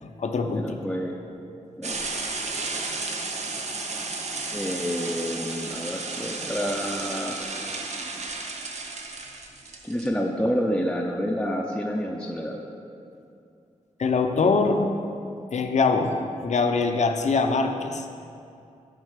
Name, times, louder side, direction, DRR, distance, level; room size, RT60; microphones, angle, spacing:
voice 1, 0.0-0.8 14.0-14.8 15.5-16.1 16.4-18.0, left 4 dB, 60° left, 6 dB, 0.5 m, -23 dB
voice 2, 0.6-1.2 1.8-2.0 4.5-7.4 9.8-12.6, equal, 5° left, 0 dB, 0.4 m, -28 dB
sound 1, 1.8-10.1, right 3 dB, 60° right, 0.7 m, -33 dB
8.2 x 4.1 x 4.8 m, 2.6 s
wide cardioid pair, 85°, 13 cm